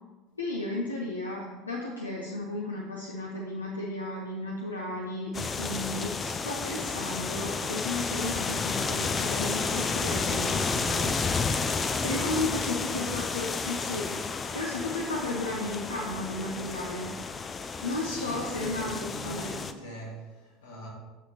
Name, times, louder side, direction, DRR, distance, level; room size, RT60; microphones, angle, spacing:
voice 1, 0.4-11.1 12.0-14.2 14.5-17.1 17.8-19.5, left 2 dB, 85° left, 0.6 m, -34 dB
sound 1, 5.3-19.7, left 4 dB, 25° left, 0.4 m, -31 dB
voice 2, 12.1-12.6 17.9-20.9, equal, 65° left, 1.7 m, -42 dB
6.8 x 6.5 x 2.9 m
figure-of-eight pair, 70°, 0 cm